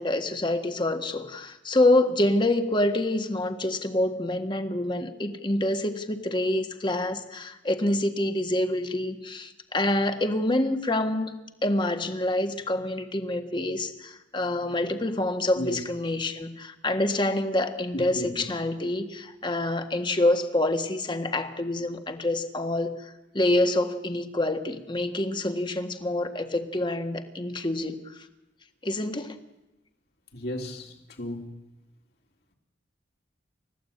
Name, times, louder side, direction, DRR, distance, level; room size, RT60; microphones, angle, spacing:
voice 1, 0.0-11.3 11.6-28.2 28.8-29.4, left 1 dB, 25° left, 7 dB, 1.6 m, -27 dB
voice 2, 17.9-18.3 30.3-31.5, left 1 dB, 60° left, 2 dB, 3.5 m, -34 dB
30.0 x 14.5 x 8.7 m, 0.97 s
head